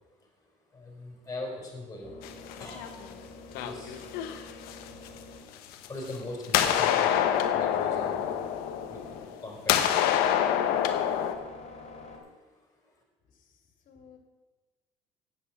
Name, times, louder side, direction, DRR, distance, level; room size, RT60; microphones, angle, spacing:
voice 1, 0.7-3.0 3.5-4.0 5.7-7.2 7.5-8.3 8.9-9.1 9.4-10.1 10.9-12.9, left 2 dB, 20° left, -1 dB, 4.6 m, -42 dB
sound 1, 1.1-12.2, left 3 dB, 40° left, 2.9 m, -48 dB
sound 2, 2.2-3.1 3.5-5.1 5.7-6.2 6.4-9.4 9.7-11.3, left 10 dB, 80° left, 0.9 m, -26 dB
voice 2, 13.3-13.6 13.9-14.2, left 7 dB, 60° left, 3 dB, 2.4 m, -55 dB
8.5 x 8.3 x 7.7 m, 1.2 s
cardioid pair, 100°, 15 cm